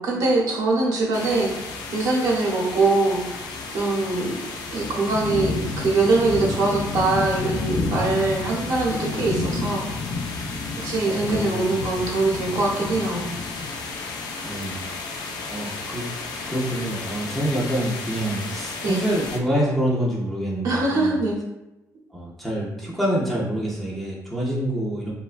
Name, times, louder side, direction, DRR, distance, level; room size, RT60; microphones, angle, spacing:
voice 1, 0.0-1.5 1.9-3.4 3.7-4.4 4.7-9.9 10.8-13.3 18.8-19.0 20.6-21.4, right 3 dB, 65° right, -3 dB, 0.7 m, -23 dB
sound 1, 1.1-19.4, left 3 dB, 80° left, 0.4 m, -31 dB
voice 2, 11.1-11.8 14.4-14.8 15.5-16.1 16.5-21.2 22.1-25.1, right 1 dB, ahead, -6 dB, 0.4 m, -26 dB
3.1 x 2.2 x 2.4 m, 0.93 s
cardioid pair, 170°, 7 cm